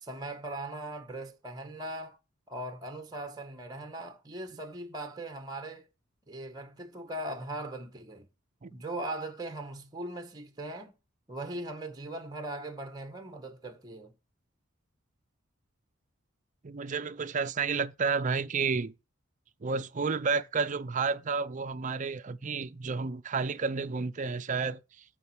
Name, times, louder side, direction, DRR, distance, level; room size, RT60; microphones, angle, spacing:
voice 1, 0.0-2.2 2.5-5.8 6.3-8.3 8.7-10.9 11.3-14.1, right 1 dB, 20° right, 1.2 m, -39 dB
voice 2, 16.6-18.9 19.6-24.8, right 5 dB, 40° right, 0.5 m, -31 dB
9.0 x 4.3 x 6.1 m
head